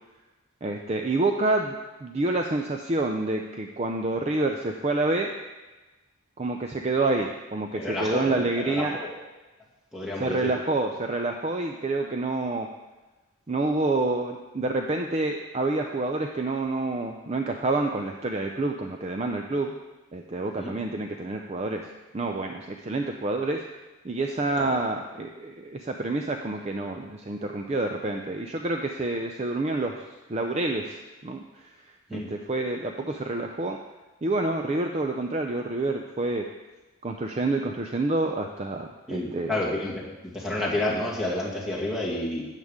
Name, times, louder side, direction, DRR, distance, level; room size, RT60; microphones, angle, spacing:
voice 1, 0.6-5.3 6.4-9.0 10.2-12.7 13.5-19.8 20.1-21.9 22.1-23.6 24.0-30.0 30.3-33.8 34.2-36.4 37.0-39.5, right 2 dB, 30° right, 3 dB, 0.5 m, -28 dB
voice 2, 7.7-9.1 9.9-10.5 20.6-20.7 24.6-24.7 32.1-32.3 39.1-42.4, left 1 dB, 5° right, -5 dB, 2.1 m, -30 dB
12.5 x 8.3 x 3.7 m, 1.2 s
head